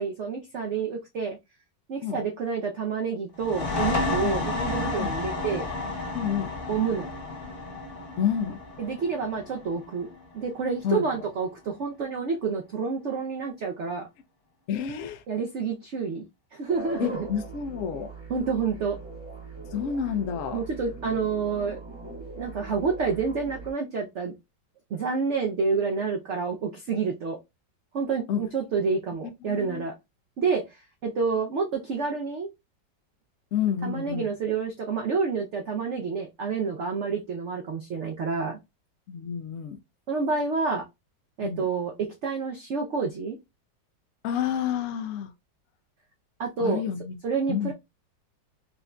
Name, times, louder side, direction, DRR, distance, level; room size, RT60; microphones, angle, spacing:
voice 1, 0.0-1.4 1.9-5.7 6.7-7.1 8.8-10.1 10.3-14.1 15.3-17.1 18.3-19.0 20.5-21.8 22.3-24.3 24.9-27.4 27.9-29.9 30.4-32.5 33.8-38.6 40.1-40.8 41.4-43.4 46.4-46.8 47.2-47.7, right 5 dB, 85° right, 0.6 m, -28 dB
sound 1, 3.3-10.7, left 3 dB, 40° left, 1.8 m, -31 dB
voice 2, 6.1-6.5 8.2-8.6 10.8-11.0 14.7-15.2 17.0-18.1 19.7-20.6 28.3-28.4 29.5-29.8 33.5-34.3 39.1-39.8 41.4-41.6 44.2-45.3 46.6-47.2 47.5-47.7, left 9 dB, 85° left, 0.7 m, -29 dB
sound 2, 16.7-23.7, right 2 dB, 10° right, 0.8 m, -40 dB
5.0 x 2.5 x 2.2 m
omnidirectional pair, 2.0 m